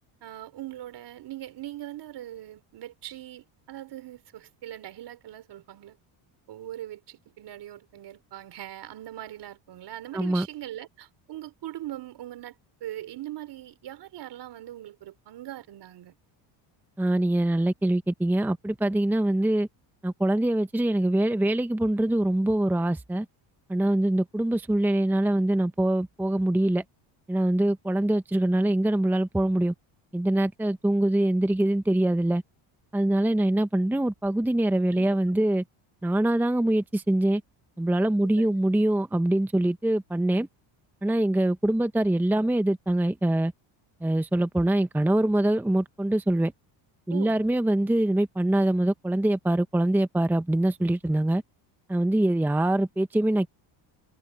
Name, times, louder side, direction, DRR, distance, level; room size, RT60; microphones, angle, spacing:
voice 1, 0.2-6.0 6.5-16.1 34.9-35.2 38.2-38.6 47.1-47.4, right 13 dB, 55° right, 3.6 m, -41 dB
voice 2, 10.1-10.5 17.0-19.7 20.0-23.3 23.7-26.8 27.3-29.7 30.1-32.4 32.9-35.6 36.0-37.4 37.8-40.5 41.0-43.5 44.0-46.5 47.1-51.4 51.9-53.5, right 1 dB, 5° right, 0.8 m, -24 dB
cardioid pair, 110°, 48 cm